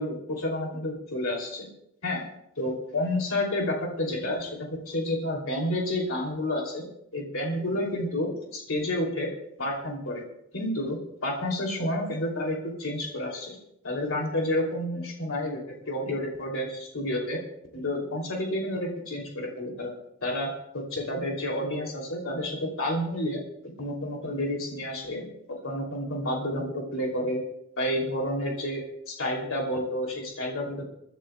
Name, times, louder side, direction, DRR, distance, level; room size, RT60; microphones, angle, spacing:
voice 1, 0.0-1.7 2.0-2.2 2.6-6.9 7.1-9.3 9.6-10.2 10.5-13.6 13.8-17.4 17.7-19.9 20.2-23.4 23.8-25.2 25.5-27.4 27.8-30.9, left 1 dB, 85° left, 0 dB, 2.9 m, -30 dB
29.0 x 11.0 x 2.3 m, 0.76 s
head